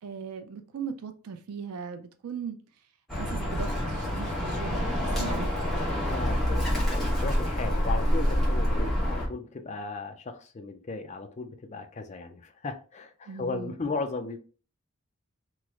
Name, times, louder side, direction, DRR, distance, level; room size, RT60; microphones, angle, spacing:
voice 1, 0.0-2.6 3.2-5.5 13.3-13.8, right 6 dB, 85° right, 0.4 m, -38 dB
Bird, 3.1-9.3, equal, ahead, 0.9 m, -27 dB
voice 2, 6.1-14.4, left 3 dB, 30° left, 0.4 m, -36 dB
3.1 x 2.0 x 3.5 m
head